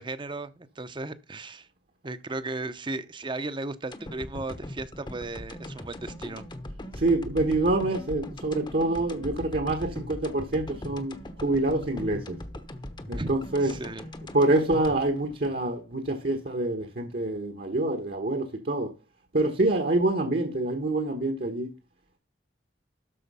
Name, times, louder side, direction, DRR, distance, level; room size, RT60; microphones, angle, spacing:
voice 1, 0.0-1.7 2.0-6.5 13.2-13.3 13.6-14.1, right 2 dB, 25° right, 0.8 m, -35 dB
sound 1, 3.9-16.1 16.5-16.6, left 1 dB, 25° left, 0.9 m, -40 dB
voice 2, 6.9-12.4 13.1-13.8 14.3-18.9 19.3-21.7, right 2 dB, 60° right, 1.3 m, -26 dB
12.5 x 4.5 x 5.6 m
head